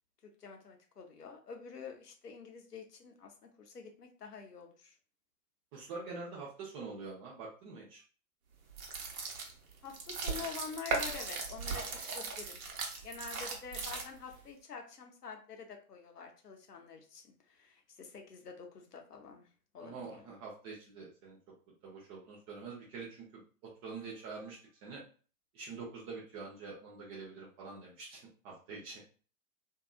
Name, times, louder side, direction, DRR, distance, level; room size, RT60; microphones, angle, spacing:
voice 1, 0.4-4.9 9.8-11.8 12.1-12.6 13.0-19.5 19.7-20.2, left 5 dB, 85° left, 3 dB, 0.8 m, -47 dB
voice 2, 5.7-8.0 19.8-21.4 21.8-23.2 23.8-25.0 25.5-29.0, right 4 dB, 25° right, -4 dB, 0.5 m, -45 dB
sound 1, 8.7-14.4, right 4 dB, 65° right, 0.9 m, -38 dB
2.7 x 2.4 x 2.3 m, 0.39 s
figure-of-eight pair, 105°, 46 cm